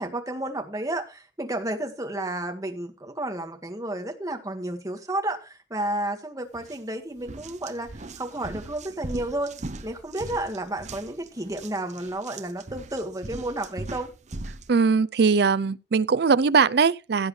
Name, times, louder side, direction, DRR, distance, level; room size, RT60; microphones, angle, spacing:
voice 1, 0.0-9.6 9.8-14.1, right 1 dB, 20° right, 1.9 m, -31 dB
sound 1, 6.5-6.8 7.2-14.7, right 2 dB, 45° right, 0.9 m, -39 dB
voice 2, 14.7-17.3, right 5 dB, 65° right, 0.5 m, -21 dB
16.5 x 8.0 x 3.3 m
head